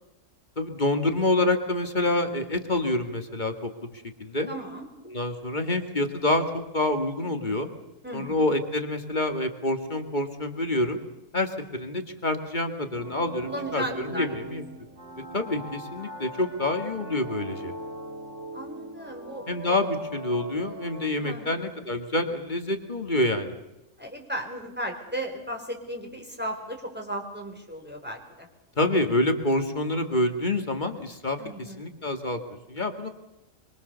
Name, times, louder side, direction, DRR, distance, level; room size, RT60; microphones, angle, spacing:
voice 1, 0.6-4.5 5.1-6.5 6.7-7.7 8.1-11.0 11.3-14.6 15.3-17.7 19.5-23.6 28.8-31.4 31.8-32.4 32.7-33.1, left 2 dB, 35° left, 6 dB, 2.2 m, -27 dB
voice 2, 4.5-4.9 8.0-8.4 13.4-14.4 18.5-19.8 21.2-21.7 24.0-28.5 31.4-31.8, right 1 dB, 5° right, 2 dB, 4.4 m, -36 dB
sound 1, 13.0-21.6, right 1 dB, 60° right, 3.3 m, -40 dB
24.5 x 24.0 x 6.9 m, 0.92 s
omnidirectional pair, 1.4 m